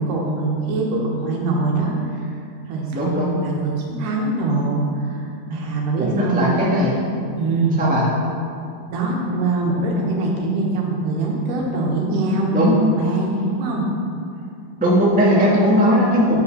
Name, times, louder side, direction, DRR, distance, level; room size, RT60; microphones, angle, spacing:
voice 1, 0.0-2.3 2.7-5.2 5.5-6.5 7.3-7.8 8.9-12.7 13.0-13.9, right 2 dB, 80° right, -1 dB, 2.8 m, -23 dB
voice 2, 2.9-3.3 6.0-7.0 7.8-8.0 12.5-12.8 14.8-16.4, equal, 10° right, -6 dB, 0.5 m, -18 dB
9.5 x 5.3 x 6.0 m, 2.4 s
omnidirectional pair, 3.7 m